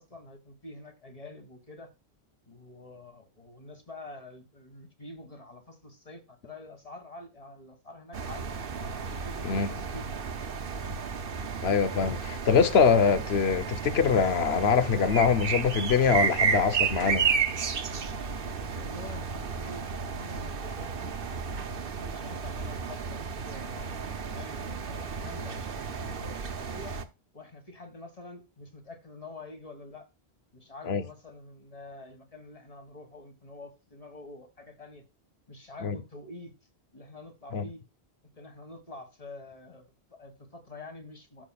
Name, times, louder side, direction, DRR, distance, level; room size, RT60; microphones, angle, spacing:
voice 1, 0.0-1.9 2.5-8.5 8.9-10.3 18.7-21.1 21.6-27.0 27.3-30.1 30.5-35.0 35.5-36.5 36.9-37.8 38.4-41.5, left 2 dB, 35° left, 1.9 m, -47 dB
sound 1, 8.1-27.1, right 5 dB, 60° right, 1.1 m, -32 dB
voice 2, 11.6-17.3 30.8-31.0 35.8-36.0 37.5-37.7, left 6 dB, 75° left, 1.1 m, -24 dB
14.0 x 6.1 x 2.3 m
omnidirectional pair, 1.1 m